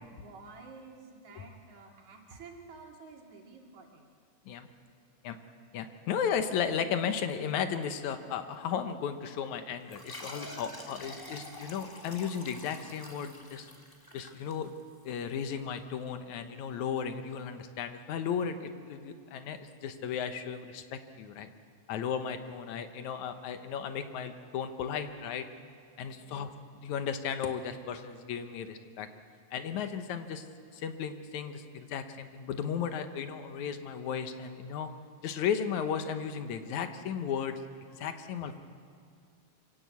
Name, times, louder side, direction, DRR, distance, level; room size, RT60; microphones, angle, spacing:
voice 1, 0.0-4.1 26.1-26.4 28.6-28.7, right 4 dB, 75° right, 0 dB, 3.7 m, -51 dB
voice 2, 5.7-13.7 14.1-14.7 15.0-21.5 21.9-25.5 26.0-29.1 29.5-30.4 30.7-34.9 35.2-37.6 37.9-38.6, left 7 dB, 80° left, 8 dB, 2.5 m, -35 dB
sound 1, 9.9-15.0, left 1 dB, 10° left, 1.0 m, -47 dB
25.0 x 16.5 x 8.2 m, 2.2 s
omnidirectional pair, 3.3 m